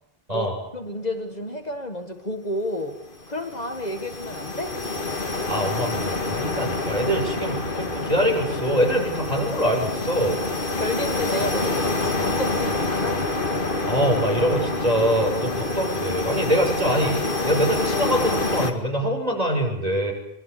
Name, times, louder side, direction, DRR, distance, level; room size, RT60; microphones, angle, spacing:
voice 1, 0.3-3.0 3.3-4.8 10.8-13.3, left 1 dB, 40° left, 1.9 m, -31 dB
sound 1, 3.0-18.7, left 2 dB, 60° left, 2.4 m, -27 dB
voice 2, 5.5-10.5 13.9-20.1, equal, 40° right, 7.1 m, -24 dB
25.5 x 23.5 x 8.5 m
omnidirectional pair, 1.0 m